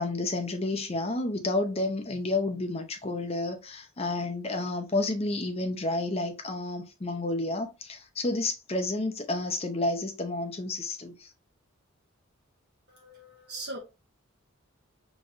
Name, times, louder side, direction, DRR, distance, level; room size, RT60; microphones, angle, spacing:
voice 1, 0.0-11.3, left 2 dB, 30° left, 0.7 m, -30 dB
voice 2, 12.9-13.8, right 2 dB, 50° right, 1.4 m, -40 dB
5.1 x 3.0 x 2.6 m
head